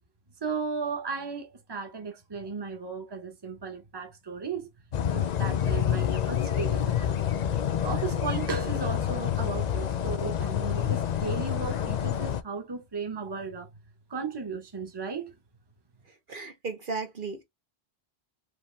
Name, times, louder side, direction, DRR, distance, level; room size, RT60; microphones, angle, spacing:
voice 1, 0.4-4.7 5.1-7.2 7.8-13.7 14.1-15.3, right 5 dB, 25° right, 1.0 m, -35 dB
sound 1, 4.9-12.4, left 9 dB, 50° left, 0.6 m, -28 dB
voice 2, 16.3-17.4, right 4 dB, 55° right, 1.1 m, -35 dB
4.9 x 3.1 x 3.2 m
omnidirectional pair, 1.1 m